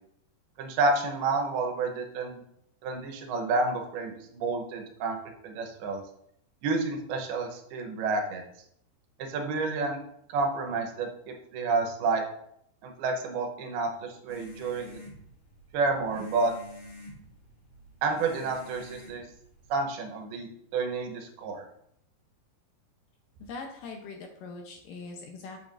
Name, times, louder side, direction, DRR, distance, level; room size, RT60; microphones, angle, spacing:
voice 1, 0.6-2.4 2.8-5.2 5.4-6.0 6.6-8.4 9.2-10.0 10.3-11.1 11.5-12.2 12.8-15.0 15.7-16.5 18.0-19.2 19.7-21.6, right 3 dB, 80° right, 3 dB, 2.8 m, -29 dB
sound 1, 14.3-19.7, left 1 dB, 50° left, 4.1 m, -47 dB
voice 2, 23.4-25.6, left 3 dB, 75° left, 2 dB, 2.1 m, -42 dB
8.6 x 7.3 x 2.6 m, 0.72 s
omnidirectional pair, 4.6 m